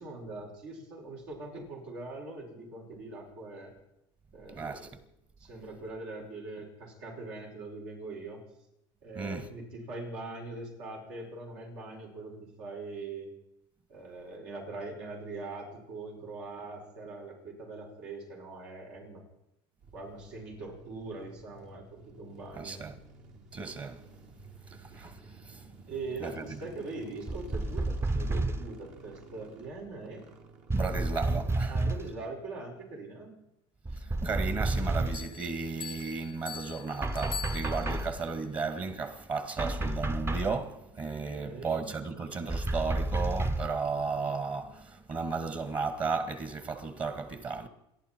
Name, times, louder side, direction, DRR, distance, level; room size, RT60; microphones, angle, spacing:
voice 1, 0.0-3.7 4.3-4.9 5.4-8.4 9.0-13.3 13.9-19.2 19.9-22.8 25.9-30.3 31.7-33.3 41.1-41.9, right 3 dB, 80° right, 5.7 m, -42 dB
voice 2, 4.5-5.0 9.1-9.5 22.6-23.0 23.5-24.0 24.7-25.8 26.2-26.4 30.7-31.8 34.0-47.7, right 4 dB, 35° right, 1.7 m, -34 dB
sound 1, 19.8-32.0, right 3 dB, 65° right, 2.5 m, -53 dB
sound 2, 27.3-28.8 30.7-32.1 33.9-35.3 37.0-38.2 39.6-40.6 42.5-43.8, right 2 dB, 20° right, 0.7 m, -31 dB
sound 3, 35.1-38.2, left 7 dB, 35° left, 0.5 m, -43 dB
27.5 x 11.0 x 4.5 m
supercardioid pair, 90°, 14 cm